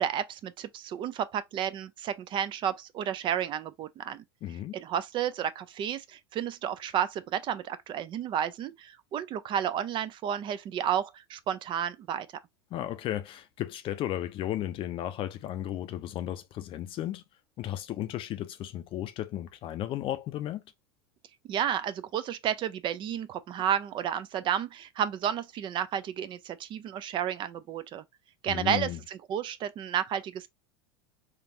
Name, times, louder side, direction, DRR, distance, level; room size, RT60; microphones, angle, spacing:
voice 1, 0.0-4.2 4.7-12.3 21.5-28.0 28.4-30.5, right 9 dB, 35° right, 0.4 m, -31 dB
voice 2, 4.4-4.8 12.7-17.2 17.6-20.6 28.5-29.0, left 12 dB, 40° left, 0.5 m, -34 dB
3.6 x 2.5 x 2.6 m
hypercardioid pair, 90°, 13 cm